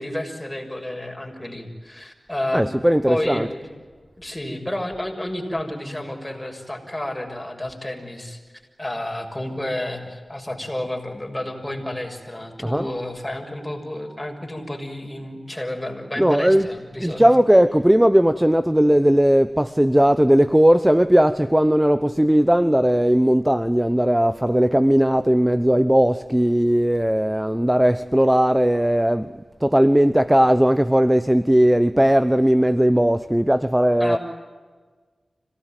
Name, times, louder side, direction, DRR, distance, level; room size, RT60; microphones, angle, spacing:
voice 1, 0.0-2.7 3.1-3.7 4.2-8.4 8.8-17.3 34.0-34.2, left 1 dB, 15° left, 6.5 m, -30 dB
voice 2, 2.5-3.5 12.6-12.9 16.2-29.3 29.6-34.2, equal, 10° right, 0.9 m, -18 dB
26.0 x 18.0 x 9.1 m
cardioid pair, 40°, 0 cm